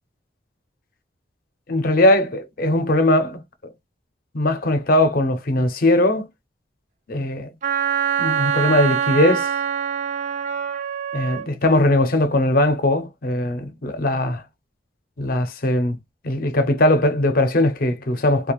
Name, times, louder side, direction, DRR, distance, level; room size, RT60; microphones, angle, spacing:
voice 1, 1.7-3.7 4.3-6.3 7.1-7.5 8.2-9.5 11.1-14.4 15.2-16.0 16.2-18.5, left 1 dB, 50° left, 0.6 m, -20 dB
Wind instrument woodwind instrument, 7.6-11.5, right 7 dB, 40° right, 0.4 m, -24 dB
2.4 x 2.2 x 2.9 m
head